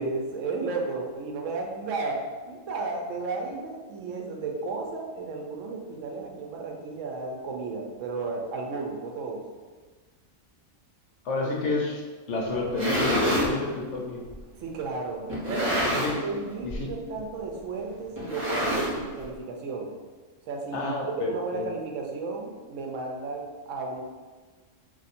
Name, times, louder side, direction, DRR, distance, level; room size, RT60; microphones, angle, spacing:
voice 1, 0.0-9.4 11.4-11.7 14.6-15.8 16.1-19.9 20.5-20.9 21.2-24.0, right 3 dB, 75° right, 0 dB, 0.9 m, -33 dB
voice 2, 11.2-12.0 12.3-14.2 15.9-16.2 16.6-16.9 20.7-21.7, left 3 dB, 65° left, -1 dB, 0.9 m, -29 dB
sound 1, 12.5-13.5 14.3-14.4 15.3-16.3 16.6-16.9 17.2-17.3 18.2-19.2, equal, 40° right, 1.4 m, -27 dB
2.6 x 2.6 x 4.1 m, 1.4 s
omnidirectional pair, 1.3 m